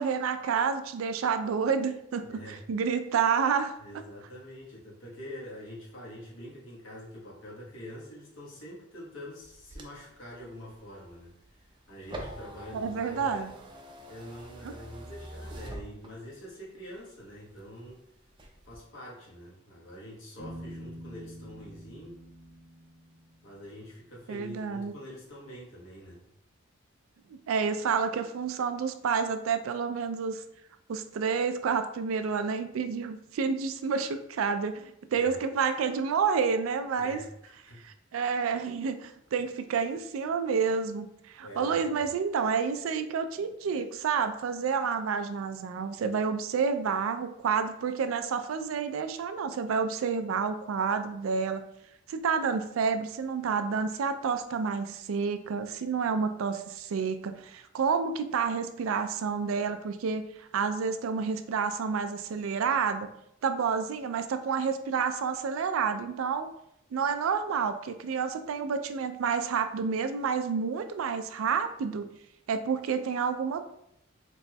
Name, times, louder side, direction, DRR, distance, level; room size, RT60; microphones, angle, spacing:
voice 1, 0.0-2.2 2.7-3.8 12.7-13.5 14.6-14.7 24.3-24.9 27.5-30.4 30.9-37.2 37.8-51.6 52.1-63.1 63.4-66.5 66.9-72.1 72.5-73.6, right 6 dB, 90° right, 9 dB, 0.4 m, -29 dB
voice 2, 2.2-2.6 3.8-13.5 14.1-18.0 18.6-22.2 23.4-26.2 35.1-35.4 37.0-37.8 41.4-42.1, equal, 75° left, -5 dB, 1.2 m, -45 dB
sound 1, 9.4-16.5 16.9-17.9 18.3-18.8, right 1 dB, 25° right, 0.4 m, -45 dB
Piano, 20.4-24.1, equal, 55° right, 0.7 m, -47 dB
4.1 x 3.0 x 2.2 m, 0.76 s
head